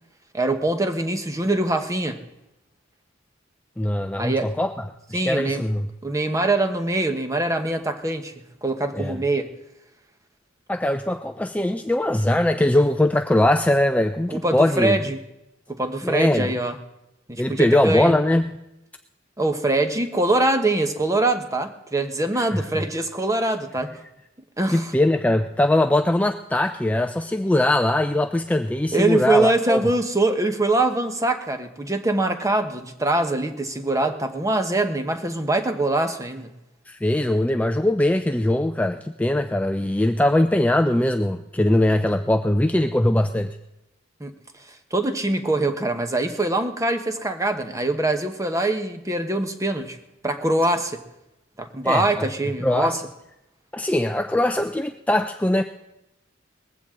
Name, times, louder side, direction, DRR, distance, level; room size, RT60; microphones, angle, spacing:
voice 1, 0.3-2.2 4.2-4.5 5.1-5.6 6.0-8.3 8.6-9.5 14.3-15.2 15.7-16.7 17.3-18.1 19.4-23.9 24.6-24.9 28.9-36.5 44.2-44.3 44.9-50.0 50.2-51.0 51.6-53.0, right 2 dB, 15° right, 7 dB, 1.1 m, -23 dB
voice 2, 3.8-4.7 5.1-5.9 8.9-9.2 10.7-15.0 16.0-16.5 17.4-18.4 22.4-22.6 24.7-29.8 36.9-43.6 51.8-52.3 52.6-53.0 53.7-55.6, left 1 dB, 5° left, 7 dB, 0.4 m, -21 dB
19.5 x 15.0 x 3.8 m, 0.91 s
head